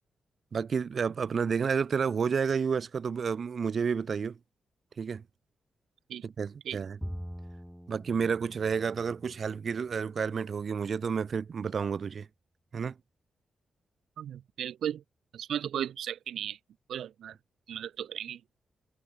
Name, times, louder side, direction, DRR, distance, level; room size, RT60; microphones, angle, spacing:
voice 1, 0.5-4.4 5.0-5.2 6.2-7.0 7.9-12.3 12.7-12.9, right 6 dB, 55° right, 4.8 m, -30 dB
Bowed string instrument, 7.0-10.4, equal, ahead, 3.0 m, -44 dB
voice 2, 14.2-15.0 15.3-16.6 16.9-17.4 17.7-18.4, right 10 dB, 85° right, 4.4 m, -36 dB
cardioid pair, 80°, 0 cm